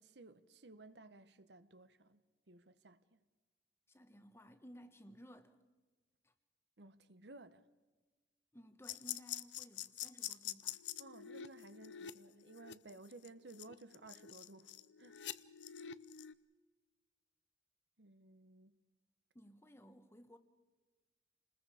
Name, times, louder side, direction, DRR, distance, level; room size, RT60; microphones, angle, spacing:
voice 1, 0.0-3.2 6.8-7.7 11.0-14.7 15.0-15.2 18.0-18.8, right 2 dB, 70° right, 1.0 m, -57 dB
voice 2, 3.9-5.6 6.2-6.3 8.5-10.8 19.3-20.4, equal, 15° left, 1.2 m, -58 dB
sound 1, 8.8-16.3, left 11 dB, 85° left, 0.7 m, -46 dB
29.0 x 20.5 x 5.0 m
head